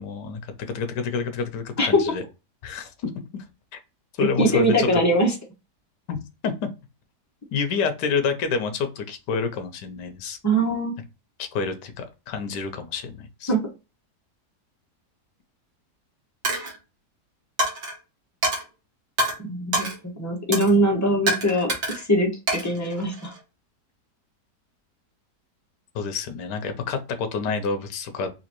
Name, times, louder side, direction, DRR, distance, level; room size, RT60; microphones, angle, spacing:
voice 1, 0.0-2.2 2.6-3.1 3.7-3.8 4.2-5.0 6.1-6.2 6.4-6.7 7.5-10.4 11.4-13.5 25.9-28.3, left 5 dB, 80° left, 8 dB, 1.3 m, -28 dB
voice 2, 4.4-5.3 10.4-10.9 13.5-13.6 19.4-19.9 20.2-23.3, right 1 dB, 15° left, 0 dB, 0.6 m, -22 dB
Coin (dropping), 16.4-16.8 17.6-17.9 18.4-18.6 19.2-19.3 19.7-20.0 20.5-20.7 21.3-22.0 22.5-23.4, right 1 dB, 90° right, 1.9 m, -26 dB
4.1 x 2.6 x 2.9 m, 0.29 s
omnidirectional pair, 1.8 m